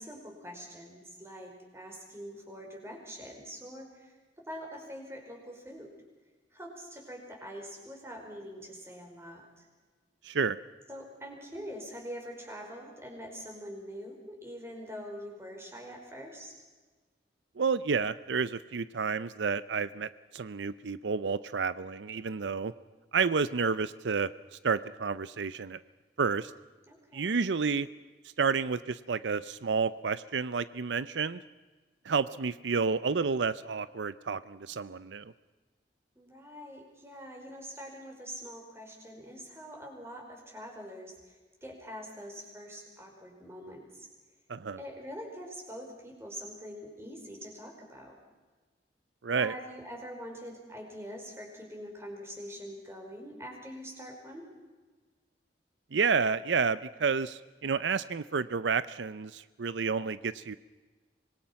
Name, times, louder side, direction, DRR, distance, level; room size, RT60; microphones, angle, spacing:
voice 1, 0.0-5.9 6.5-9.7 10.9-16.6 26.9-27.4 36.1-44.1 44.8-48.1 49.3-54.4, equal, 15° right, 1 dB, 5.1 m, -44 dB
voice 2, 10.2-10.6 17.6-22.7 23.1-24.3 24.6-25.8 26.2-26.5 27.1-27.9 28.4-31.4 32.1-35.3 44.5-44.8 49.2-49.5 55.9-60.6, right 5 dB, 85° right, 15 dB, 0.6 m, -30 dB
25.0 x 21.5 x 5.8 m, 1.3 s
head